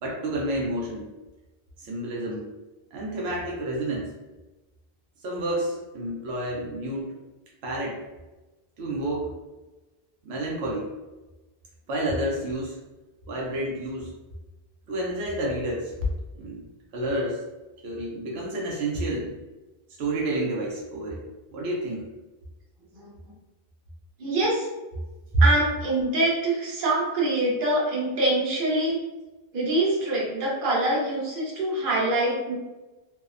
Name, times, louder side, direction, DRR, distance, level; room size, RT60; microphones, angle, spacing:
voice 1, 0.0-1.1 1.8-2.5 2.9-4.1 5.2-7.2 7.6-8.0 8.8-9.3 10.2-10.9 11.9-12.8 13.3-14.2 14.9-15.9 16.3-16.6 16.9-17.4 17.8-19.4 20.0-22.1, right 1 dB, 90° right, -3 dB, 0.9 m, -30 dB
voice 2, 24.2-24.7 25.4-29.0 29.5-32.6, right 2 dB, 60° right, -4 dB, 0.9 m, -25 dB
2.7 x 2.0 x 2.4 m, 1.1 s
omnidirectional pair, 1.0 m